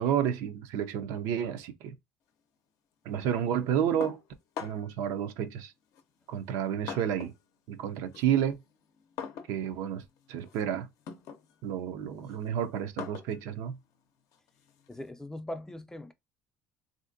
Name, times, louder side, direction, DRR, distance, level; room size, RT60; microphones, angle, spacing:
voice 1, 0.0-1.9 3.0-4.2 4.6-5.7 6.3-7.3 7.7-8.6 9.5-10.0 10.3-10.9 11.6-13.8, right 9 dB, 80° right, 0.5 m, -30 dB
sound 1, 4.0-5.0 5.9-7.5 7.8-15.1, left 7 dB, 70° left, 0.5 m, -44 dB
voice 2, 14.9-16.1, left 1 dB, 10° left, 0.3 m, -40 dB
3.2 x 2.6 x 2.5 m
cardioid pair, 105°, 6 cm